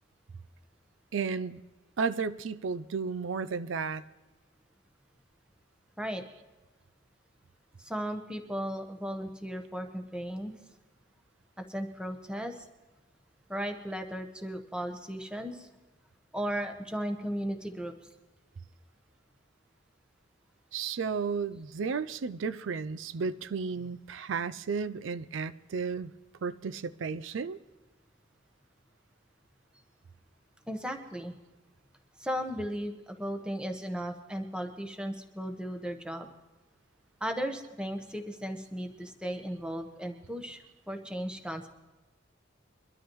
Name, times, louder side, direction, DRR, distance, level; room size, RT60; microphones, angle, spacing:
voice 1, 1.1-1.6 2.0-4.0 20.7-26.1 26.4-27.6, right 5 dB, 85° right, 0.4 m, -33 dB
voice 2, 7.8-10.5 11.7-12.6 13.5-15.7 16.3-17.9 30.7-31.4 32.2-36.3 37.2-40.6 40.9-41.7, equal, 5° right, 1.1 m, -36 dB
23.5 x 12.5 x 3.1 m
head